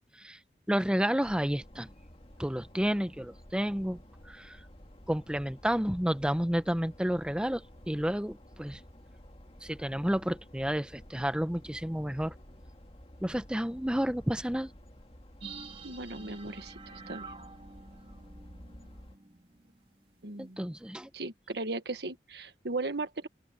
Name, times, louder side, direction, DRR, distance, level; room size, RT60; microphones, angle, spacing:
voice 1, 0.7-1.9 2.4-4.0 4.3-4.6 5.1-8.8 9.6-12.3 13.2-14.7 20.4-21.1, equal, 5° right, 0.8 m, -31 dB
sound 1, 1.2-19.2, equal, 35° left, 2.2 m, -53 dB
sound 2, 15.4-19.8 20.1-20.2, right 4 dB, 30° right, 3.3 m, -48 dB
voice 2, 15.8-17.3 20.2-20.7 21.1-23.3, right 2 dB, 70° right, 1.6 m, -37 dB
open air
head